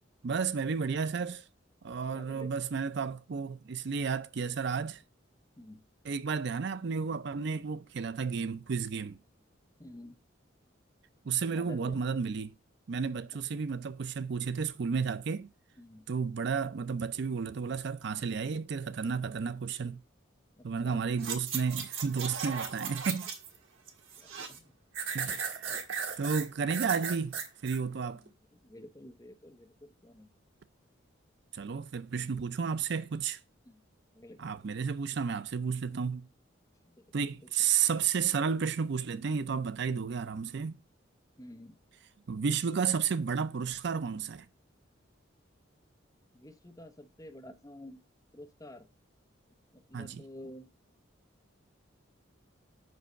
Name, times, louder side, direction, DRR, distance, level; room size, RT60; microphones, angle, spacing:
voice 1, 0.2-1.5 1.8-5.0 6.0-9.2 11.2-12.5 12.9-15.5 16.1-20.0 20.6-23.3 25.1-25.8 26.2-27.4 27.6-28.2 31.5-33.4 34.4-36.3 37.1-40.8 42.3-44.5 49.9-50.2, right 6 dB, 60° right, 0.5 m, -32 dB
voice 2, 2.1-2.5 5.6-5.8 9.8-10.2 11.5-12.0 15.8-16.1 20.6-21.0 24.2-24.7 28.2-30.3 33.7-33.8 34.1-34.5 36.8-37.1 41.4-41.8 46.3-48.0 48.3-48.9 49.7-50.7, left 1 dB, 20° left, 0.8 m, -50 dB
sound 1, 21.2-23.6 23.9-24.6 24.9-27.8 28.3-28.4, right 6 dB, 90° right, 1.6 m, -36 dB
5.5 x 5.3 x 6.3 m
head